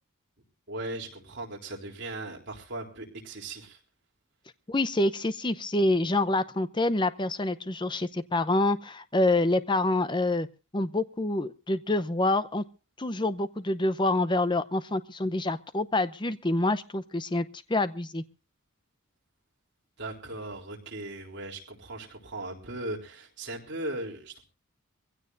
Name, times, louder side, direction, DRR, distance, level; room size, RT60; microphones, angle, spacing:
voice 1, 0.7-3.8 20.0-24.4, right 2 dB, 55° right, 0 dB, 3.7 m, -38 dB
voice 2, 4.7-10.5 10.7-12.6 13.0-18.2, left 2 dB, 20° left, 13 dB, 0.7 m, -27 dB
23.5 x 16.0 x 2.6 m, 0.33 s
head